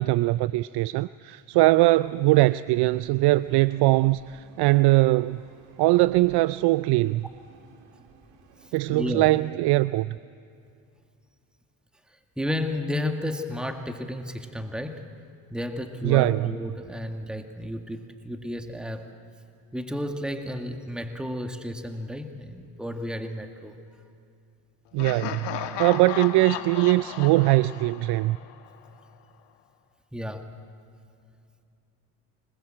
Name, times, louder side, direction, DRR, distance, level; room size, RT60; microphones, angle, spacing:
voice 1, 0.0-5.4 5.8-7.2 8.7-10.2 16.0-16.5 24.9-28.4, right 19 dB, 65° right, 17 dB, 0.5 m, -21 dB
sound 1, 1.9-8.7, right 5 dB, 90° right, 2.2 m, -54 dB
voice 2, 8.6-9.3 12.1-15.1 15.5-19.1 19.7-23.8 30.1-30.6, left 1 dB, ahead, 5 dB, 1.9 m, -32 dB
Laughter, 25.0-28.9, left 10 dB, 70° left, 1.5 m, -35 dB
25.5 x 21.0 x 7.7 m, 2.5 s
supercardioid pair, 70°, 42 cm